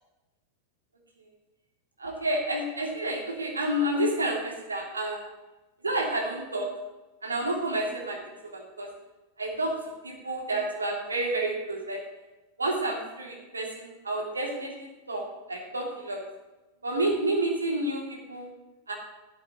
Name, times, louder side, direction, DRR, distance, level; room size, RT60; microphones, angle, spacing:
voice 1, 2.0-5.2 5.8-6.7 7.2-8.2 8.5-8.9 9.4-12.0 12.6-15.2 15.5-16.2 16.8-18.5 18.9-19.0, right 1 dB, 80° right, -1 dB, 2.8 m, -30 dB
14.0 x 12.5 x 3.1 m, 1.1 s
figure-of-eight pair, 90°, 0 cm